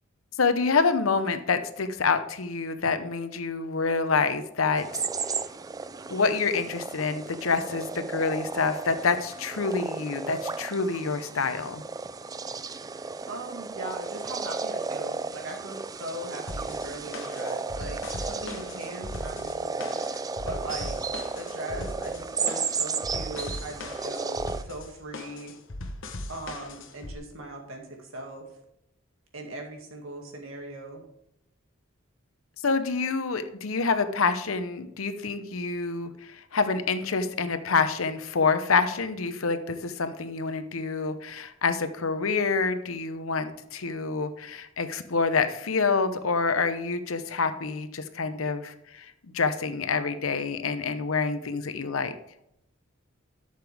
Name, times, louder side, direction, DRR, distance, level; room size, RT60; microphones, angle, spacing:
voice 1, 0.4-5.1 6.1-11.8 32.6-52.1, left 4 dB, 85° left, 10 dB, 0.8 m, -27 dB
sound 1, 4.8-24.6, right 4 dB, 20° right, 0.3 m, -34 dB
voice 2, 13.3-20.0 20.4-21.0 21.4-25.5 26.3-28.5 29.3-31.1, right 2 dB, 75° right, 2 dB, 2.2 m, -39 dB
sound 2, 16.5-27.2, left 2 dB, 65° left, 1.1 m, -39 dB
11.5 x 6.7 x 3.5 m, 0.79 s
head